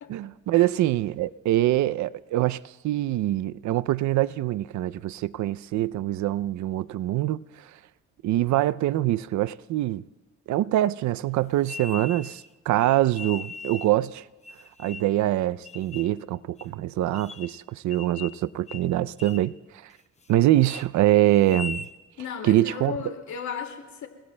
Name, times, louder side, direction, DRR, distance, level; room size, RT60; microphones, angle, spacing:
voice 1, 0.1-7.4 8.2-10.0 10.5-14.2 14.8-19.5 19.8-19.9 20.3-21.9 22.4-22.9, right 14 dB, 70° right, 0.5 m, -24 dB
sound 1, 11.6-12.5 13.1-14.0 14.4-15.2 15.6-16.1 16.6-16.7 17.1-17.6 17.9-18.4 18.7-18.9 19.2-19.5 19.9-20.3 20.6-20.9 21.4-21.9, left 5 dB, 20° left, 0.8 m, -39 dB
voice 2, 22.2-24.1, left 7 dB, 70° left, 2.1 m, -35 dB
30.0 x 20.5 x 2.2 m
cardioid pair, 90°, 30 cm